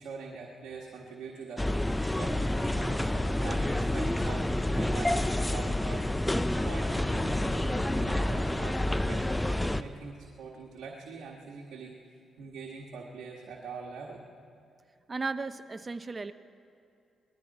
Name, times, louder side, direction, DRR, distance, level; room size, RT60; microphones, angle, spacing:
voice 1, 0.0-6.1 6.6-9.4 9.7-12.0 12.4-14.2, right 4 dB, 75° right, -2 dB, 1.5 m, -43 dB
sound 1, 1.6-9.8, left 1 dB, 10° left, 0.6 m, -28 dB
voice 2, 15.1-16.3, right 4 dB, 30° right, 11 dB, 0.7 m, -35 dB
19.5 x 13.5 x 4.2 m, 2.7 s
supercardioid pair, 65°, 0 cm